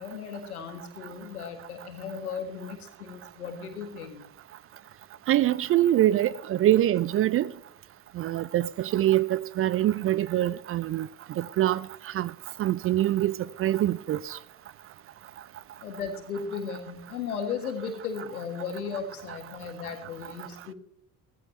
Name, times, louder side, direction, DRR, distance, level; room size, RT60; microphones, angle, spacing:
voice 1, 0.0-4.2 15.8-20.7, left 6 dB, 85° left, 1.9 m, -36 dB
voice 2, 5.3-7.5 8.2-11.1 11.4-11.8 12.2-12.3 12.6-13.3 13.6-14.2, right 13 dB, 30° right, 0.4 m, -24 dB
16.0 x 15.0 x 3.2 m
figure-of-eight pair, 60°, 43 cm